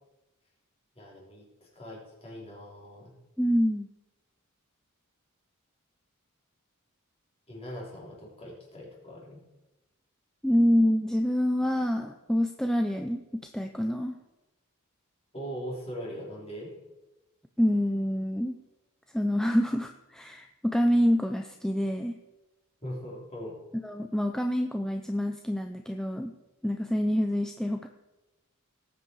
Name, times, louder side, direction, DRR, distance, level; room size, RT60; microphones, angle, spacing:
voice 1, 1.0-3.1 7.5-9.4 15.3-16.7 22.8-23.6, equal, 30° left, -3 dB, 3.9 m, -41 dB
voice 2, 3.4-3.9 10.4-14.1 17.6-18.6 19.1-22.2 23.8-26.3 26.6-27.9, equal, 5° left, 5 dB, 0.5 m, -26 dB
18.0 x 8.2 x 4.7 m, 1.0 s
head